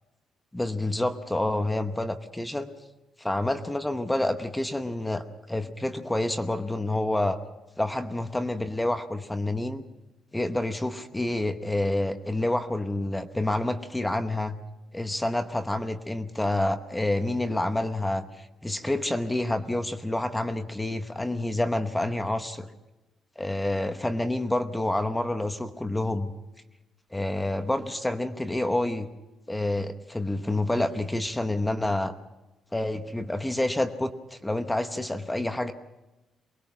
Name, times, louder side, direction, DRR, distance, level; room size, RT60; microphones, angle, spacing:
voice 1, 0.5-2.7 3.2-7.4 7.8-9.8 10.3-14.5 14.9-22.7 23.4-26.3 27.1-29.1 29.5-32.1 32.7-35.7, left 1 dB, 10° left, 8 dB, 0.9 m, -28 dB
23.5 x 20.0 x 5.9 m, 1.0 s
cardioid pair, 145°, 0 cm